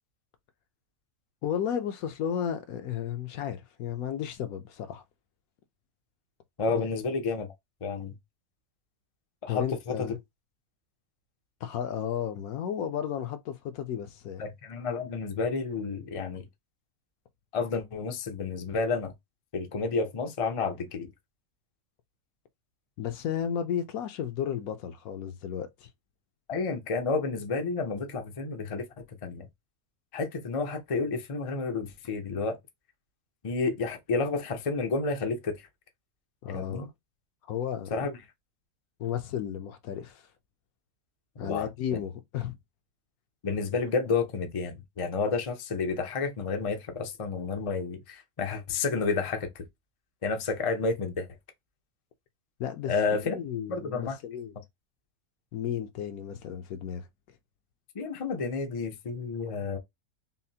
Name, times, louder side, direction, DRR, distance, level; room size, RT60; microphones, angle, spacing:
voice 1, 1.4-5.0 6.7-6.9 9.5-10.2 11.6-14.4 23.0-25.9 36.4-36.9 37.5-38.1 39.0-40.2 41.4-42.6 52.6-54.6 55.5-57.1, left 9 dB, 70° left, 1.1 m, -33 dB
voice 2, 6.6-7.5 7.8-8.1 9.4-9.9 14.4-16.5 17.5-19.1 19.5-21.1 26.5-28.9 29.2-29.5 30.1-32.6 33.4-35.6 36.5-36.9 37.9-38.2 41.4-41.7 43.4-49.6 50.2-51.3 52.8-53.4 53.7-54.2 57.9-59.8, left 4 dB, 40° left, 0.4 m, -30 dB
5.7 x 2.1 x 2.7 m
omnidirectional pair, 1.6 m